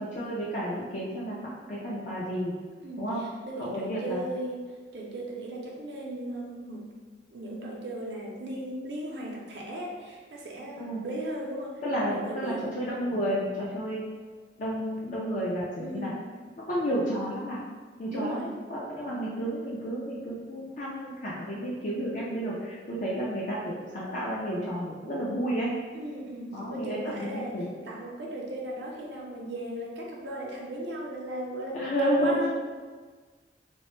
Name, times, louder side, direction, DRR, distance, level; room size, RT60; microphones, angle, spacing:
voice 1, 0.0-2.6 3.0-3.2 3.6-4.2 10.8-11.1 11.8-14.0 14.6-16.1 16.7-17.6 18.0-25.7 26.5-27.7 31.7-32.5, equal, 45° left, -6 dB, 0.4 m, -31 dB
voice 2, 2.8-4.7 4.9-6.9 7.3-11.8 12.1-12.7 15.8-16.2 18.1-18.5 25.9-32.5, right 1 dB, 65° right, -2 dB, 0.5 m, -37 dB
3.0 x 2.0 x 3.0 m, 1.5 s
head